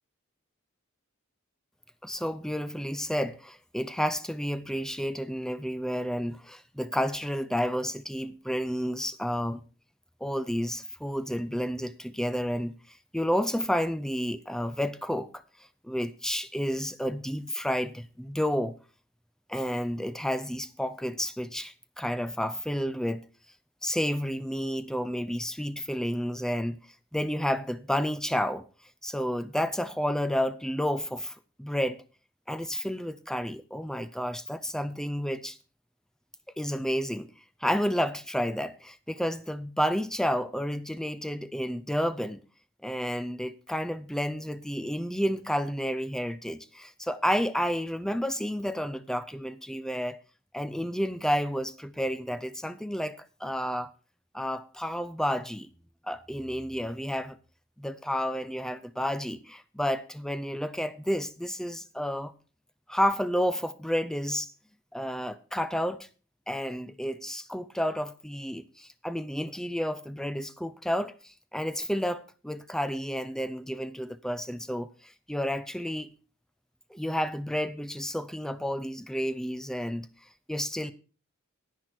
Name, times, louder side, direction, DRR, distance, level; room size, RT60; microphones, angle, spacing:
voice 1, 2.0-9.6 10.2-12.7 13.1-15.3 15.8-18.7 19.5-23.2 23.8-26.8 27.1-28.6 29.0-32.0 32.5-35.6 36.6-37.3 37.6-42.4 42.8-50.2 50.5-53.9 54.3-55.7 56.0-57.4 57.8-62.3 62.9-64.5 64.9-66.1 66.5-76.1 76.9-80.1 80.5-80.9, equal, 5° left, 0.5 m, -31 dB
10.5 x 9.5 x 4.4 m
head